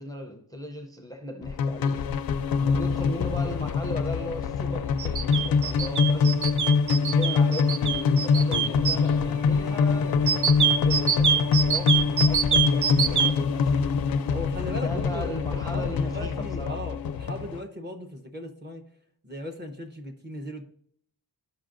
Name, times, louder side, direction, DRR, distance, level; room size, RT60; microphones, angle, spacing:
voice 1, 0.0-2.4 2.6-6.5 7.0-10.5 10.8-14.3 14.7-17.0, left 1 dB, 10° left, 0.6 m, -38 dB
sound 1, 1.4-17.6, left 5 dB, 60° left, 0.5 m, -24 dB
sound 2, 5.0-9.0 10.3-13.3, right 7 dB, 50° right, 0.5 m, -24 dB
voice 2, 14.3-18.8 19.2-20.6, left 1 dB, 25° right, 0.9 m, -37 dB
13.0 x 5.3 x 2.5 m
wide cardioid pair, 110°, 41 cm